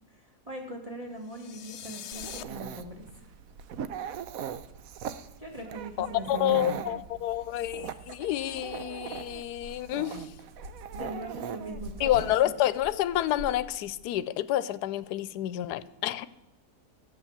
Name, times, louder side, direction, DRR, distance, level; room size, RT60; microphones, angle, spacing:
voice 1, 0.5-3.3 5.4-6.8 10.9-12.3, right 1 dB, 20° right, 2 dB, 2.0 m, -40 dB
sound 1, 1.3-2.4, left 10 dB, 65° left, 0.7 m, -42 dB
Dog, 2.1-12.4, right 8 dB, 65° right, 1.1 m, -40 dB
voice 2, 6.0-10.3 12.0-16.3, left 13 dB, 80° left, 16 dB, 1.2 m, -29 dB
sound 2, 8.5-8.6 9.1-14.1, equal, 90° right, 1.9 m, -46 dB
12.5 x 8.5 x 7.3 m, 0.93 s
omnidirectional pair, 1.7 m